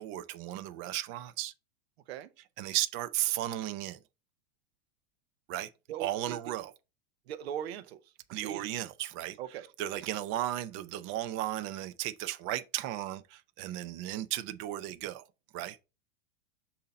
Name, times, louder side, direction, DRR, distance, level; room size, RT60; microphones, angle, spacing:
voice 1, 0.0-1.5 2.6-4.0 5.5-5.7 6.0-6.7 8.3-9.4 9.8-15.2 15.5-15.8, right 14 dB, 40° right, 0.6 m, -35 dB
voice 2, 5.9-6.4 7.3-8.0 8.4-8.7 9.4-9.7, right 10 dB, 75° right, 0.8 m, -39 dB
6.7 x 2.8 x 5.2 m
supercardioid pair, 130°, 32 cm